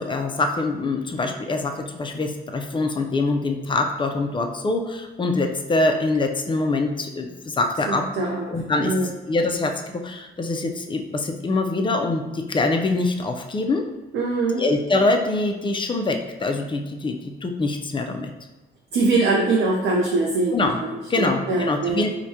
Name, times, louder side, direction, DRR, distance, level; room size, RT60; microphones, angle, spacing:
voice 1, 0.0-8.1 8.5-13.8 14.6-18.3 20.5-20.8 21.1-22.2, left 2 dB, 25° left, 4 dB, 0.4 m, -24 dB
voice 2, 7.9-8.4 8.8-9.1 14.1-14.6 18.9-22.0, right 3 dB, 80° right, -2 dB, 0.6 m, -23 dB
4.7 x 2.2 x 2.8 m, 1.1 s
cardioid pair, 90°, 20 cm